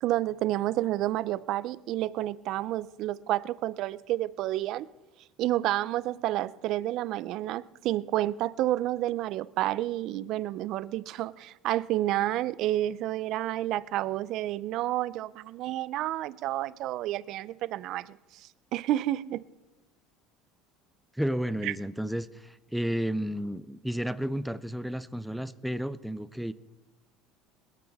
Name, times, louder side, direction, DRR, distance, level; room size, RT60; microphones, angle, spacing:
voice 1, 0.0-4.9 5.4-19.4 21.6-21.7, right 14 dB, 55° right, 0.4 m, -30 dB
voice 2, 21.1-26.5, equal, ahead, 0.4 m, -32 dB
20.5 x 13.5 x 3.6 m
cardioid pair, 140°, 0 cm